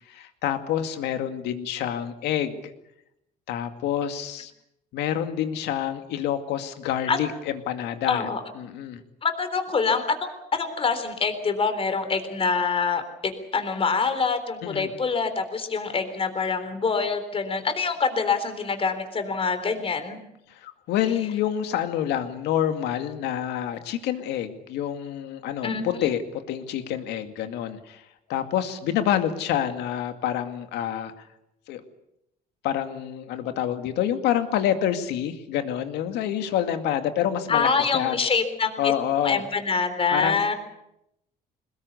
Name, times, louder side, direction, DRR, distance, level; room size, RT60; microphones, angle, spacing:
voice 1, 0.0-2.7 3.5-4.5 4.9-8.3 8.6-9.0 14.6-14.9 20.5-28.0 28.3-31.1 31.7-31.8 32.6-37.7 37.9-38.2 38.8-39.4 40.1-40.4, left 10 dB, 85° left, 7 dB, 2.3 m, -27 dB
voice 2, 8.1-8.4 9.2-20.2 25.6-26.1 37.5-38.9 39.2-40.5, left 5 dB, 35° left, 8 dB, 3.7 m, -25 dB
22.5 x 20.5 x 8.3 m, 0.83 s
cardioid pair, 110°, 17 cm